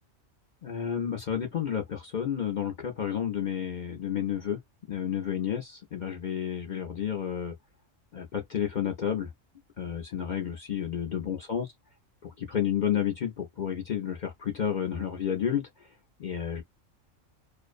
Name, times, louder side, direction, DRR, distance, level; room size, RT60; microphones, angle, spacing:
voice 1, 0.6-4.6 4.9-7.5 8.1-9.3 9.8-11.7 12.2-15.9 16.2-16.6, left 9 dB, 55° left, 0.5 m, -31 dB
2.4 x 2.1 x 2.4 m
omnidirectional pair, 1.3 m